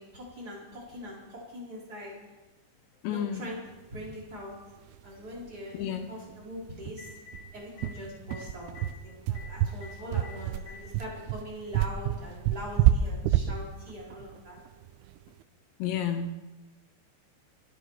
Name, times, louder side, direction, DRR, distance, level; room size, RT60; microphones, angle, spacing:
voice 1, 0.0-2.2 3.1-3.6 3.9-4.5 5.0-7.1 7.5-14.6, equal, 20° right, -5 dB, 3.8 m, -42 dB
voice 2, 3.0-3.4 5.7-6.1 15.8-16.4, left 8 dB, 80° left, 8 dB, 2.7 m, -31 dB
Telephone, 4.2-4.3 6.4-6.5 6.8-7.4 7.8-7.9 8.3-8.4 8.7-8.9 9.3-9.5 9.8-9.9 10.2-10.8 11.8-11.9 13.3-13.4, left 7 dB, 10° left, 4.7 m, -47 dB
sound 1, 4.9-5.0 5.3-5.4 5.8-5.9 6.3-6.4 6.9-15.3, right 11 dB, 85° right, 3.0 m, -28 dB
24.0 x 9.3 x 4.7 m, 1.1 s
omnidirectional pair, 5.4 m